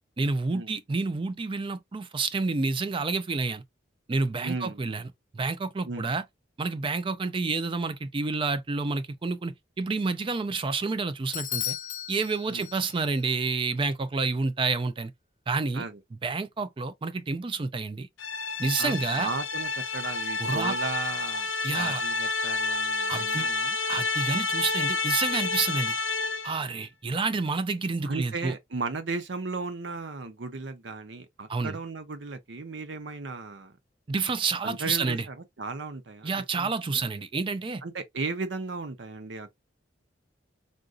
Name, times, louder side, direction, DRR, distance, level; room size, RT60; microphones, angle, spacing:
voice 1, 0.2-3.6 4.1-5.0 5.3-6.2 6.6-11.8 12.1-15.1 15.5-15.8 16.2-18.1 18.6-19.3 20.4-20.7 21.6-22.0 23.1-23.5 23.9-26.0 26.4-28.5 31.5-31.8 34.1-35.3 36.2-37.8, right 4 dB, 25° right, 0.4 m, -29 dB
voice 2, 4.4-5.0 5.9-6.1 12.5-12.7 15.7-16.0 18.8-21.5 21.7-23.8 28.1-33.7 34.6-36.7 37.8-39.5, right 3 dB, 70° right, 0.7 m, -35 dB
Bell / Doorbell, 11.3-13.2, left 12 dB, 45° left, 0.6 m, -35 dB
sound 1, 18.2-26.6, left 3 dB, 90° left, 0.5 m, -29 dB
3.7 x 2.5 x 2.4 m
head